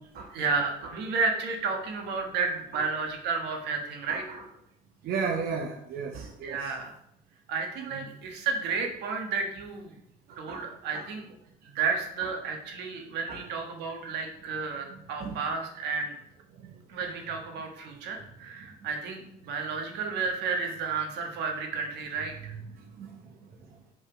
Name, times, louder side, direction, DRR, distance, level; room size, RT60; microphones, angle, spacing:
voice 1, 0.3-4.4 6.4-6.9 7.5-9.9 10.4-11.3 11.6-16.1 16.9-22.5, right 4 dB, 85° right, 3 dB, 1.4 m, -32 dB
voice 2, 4.1-4.5 5.0-6.8 7.8-8.1 10.3-10.6 10.9-11.1 12.2-12.3 13.3-13.5 14.9-15.4 22.5-22.7 23.0-23.2, right 5 dB, 60° right, 2 dB, 0.9 m, -35 dB
5.0 x 4.2 x 5.8 m, 0.76 s
cardioid pair, 110°, 17 cm